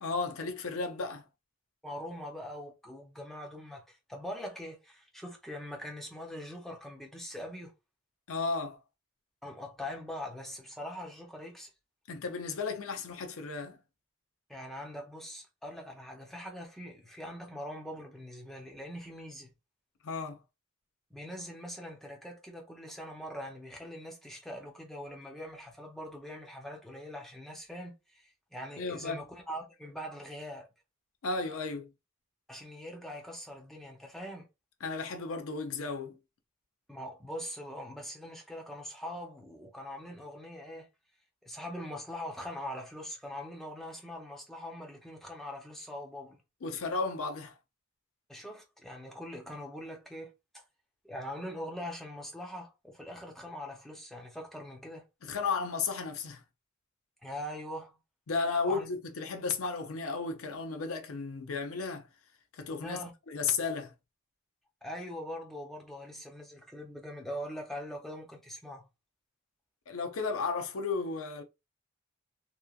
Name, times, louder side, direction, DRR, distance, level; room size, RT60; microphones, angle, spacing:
voice 1, 0.0-1.2 8.3-8.8 12.1-13.8 20.0-20.4 28.8-29.2 31.2-31.9 34.8-36.2 46.6-47.6 55.2-56.4 58.3-62.1 62.5-63.0 63.3-63.9 69.9-71.4, left 4 dB, 80° left, 0.5 m, -34 dB
voice 2, 1.8-7.7 9.4-11.7 14.5-19.5 21.1-30.7 32.5-34.5 36.9-40.9 41.4-46.4 48.3-50.6 51.0-55.0 57.2-58.0 58.7-58.9 62.8-63.1 64.8-68.9, equal, ahead, 0.5 m, -42 dB
3.0 x 2.2 x 2.3 m
head